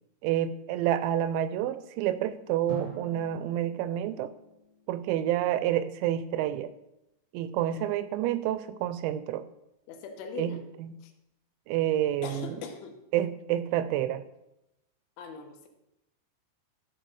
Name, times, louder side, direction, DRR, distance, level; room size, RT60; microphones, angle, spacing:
voice 1, 0.2-4.3 4.9-6.7 7.3-9.4 10.4-10.5 10.8-10.9 11.7-12.6 13.1-14.2, right 11 dB, 85° right, 13 dB, 2.6 m, -28 dB
Drum, 2.7-5.6, equal, 30° left, 0.9 m, -45 dB
voice 2, 7.6-7.9 9.9-10.6 11.0-11.1 12.2-13.0 15.2-15.7, left 6 dB, 80° left, 5 dB, 3.5 m, -41 dB
13.5 x 4.8 x 6.2 m, 0.88 s
omnidirectional pair, 5.5 m